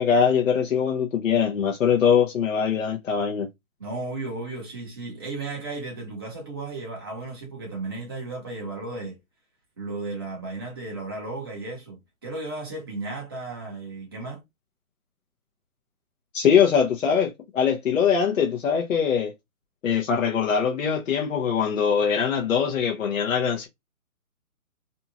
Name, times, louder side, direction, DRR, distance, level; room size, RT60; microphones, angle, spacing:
voice 1, 0.0-3.5 16.3-19.3 19.8-23.7, left 7 dB, 60° left, 0.7 m, -22 dB
voice 2, 3.8-9.2 9.8-14.4, right 3 dB, 15° right, 0.7 m, -34 dB
2.7 x 2.3 x 2.7 m
hypercardioid pair, 160°, 44 cm